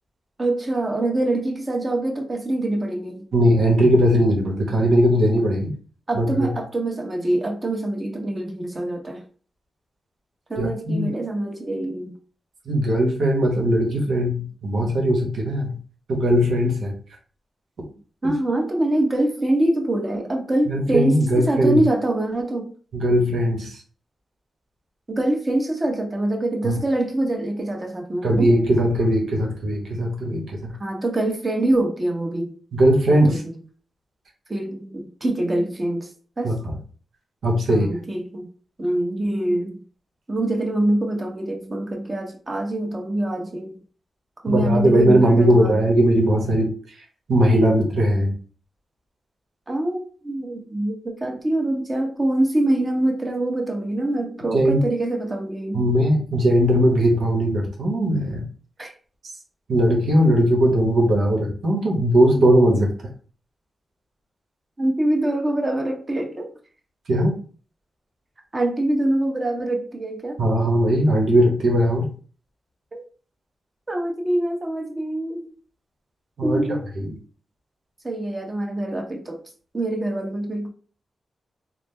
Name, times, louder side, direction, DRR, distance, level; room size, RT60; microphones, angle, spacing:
voice 1, 0.4-3.2 6.1-9.2 10.5-12.2 18.2-22.7 25.1-28.5 30.8-32.5 33.1-33.5 34.5-36.1 36.4-36.5 37.7-38.5 38.8-39.8 40.3-43.7 44.4-45.8 49.7-55.9 58.8-58.9 64.8-66.5 68.5-70.4 72.9-73.0 73.9-75.5 76.4-76.8 78.0-79.4 79.7-80.7, right 1 dB, 35° right, 1 dB, 1.1 m, -24 dB
voice 2, 3.3-5.7 6.1-6.5 10.6-11.1 12.7-15.7 16.1-17.0 18.2-18.4 20.7-21.8 22.9-23.8 26.6-26.8 28.2-30.7 32.7-33.4 36.4-36.8 37.4-37.9 44.5-46.7 47.3-48.3 54.5-54.8 55.7-58.5 59.7-62.9 67.1-67.4 70.4-72.1 76.4-77.1, equal, 80° right, 0 dB, 1.1 m, -19 dB
3.8 x 2.2 x 3.3 m, 0.40 s
cardioid pair, 65°, 0 cm